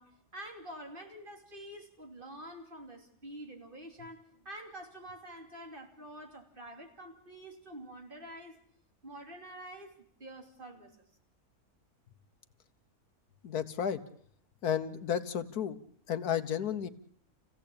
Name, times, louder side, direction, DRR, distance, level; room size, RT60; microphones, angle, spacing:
voice 1, 0.0-8.6 9.0-10.9, right 1 dB, 35° right, 3.2 m, -47 dB
voice 2, 13.4-14.0 14.6-15.8 16.1-16.9, left 8 dB, 90° left, 1.7 m, -32 dB
28.5 x 16.0 x 8.6 m
omnidirectional pair, 1.6 m